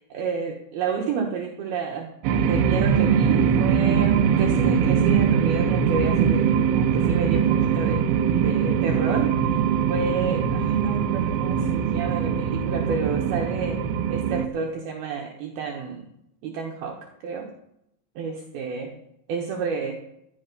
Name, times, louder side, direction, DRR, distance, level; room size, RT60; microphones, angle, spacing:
voice 1, 0.1-2.1 2.4-8.0 8.4-9.6 9.9-13.8 14.1-16.1 16.4-17.0 17.2-17.5 18.2-19.0 19.3-19.9, right 5 dB, 70° right, 1 dB, 2.7 m, -30 dB
sound 1, 2.2-14.5, right 7 dB, 85° right, 3.2 m, -22 dB
15.0 x 11.0 x 5.4 m, 0.80 s
omnidirectional pair, 5.5 m